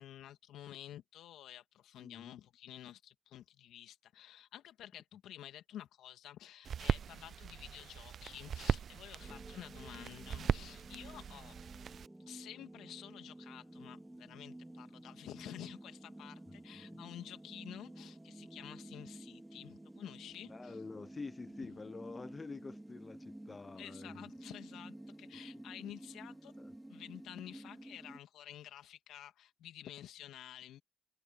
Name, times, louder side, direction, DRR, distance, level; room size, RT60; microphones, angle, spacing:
voice 1, 0.0-11.6 12.3-20.8 23.8-26.5 26.9-30.8, left 12 dB, 75° left, 2.5 m, -51 dB
voice 2, 2.0-2.4 9.3-9.4 16.5-17.0 20.5-24.2 25.5-25.6 26.6-26.7, left 4 dB, 35° left, 0.7 m, -48 dB
sound 1, 6.6-12.1, right 8 dB, 60° right, 0.5 m, -38 dB
sound 2, 9.2-28.2, right 1 dB, 10° right, 3.4 m, -52 dB
hypercardioid pair, 50°, 0 cm